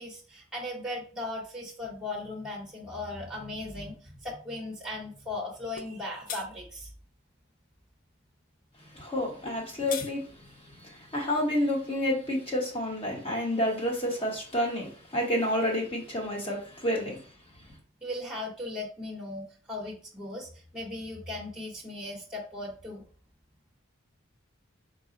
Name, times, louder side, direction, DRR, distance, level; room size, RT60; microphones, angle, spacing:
voice 1, 0.0-6.9 18.0-23.0, left 2 dB, 5° right, 1.0 m, -37 dB
sound 1, 5.8-5.9 6.3-6.5 9.5-10.1, left 7 dB, 40° left, 0.4 m, -37 dB
voice 2, 8.9-10.3 10.8-17.2, left 1 dB, 25° left, 1.1 m, -29 dB
4.1 x 2.3 x 3.8 m
head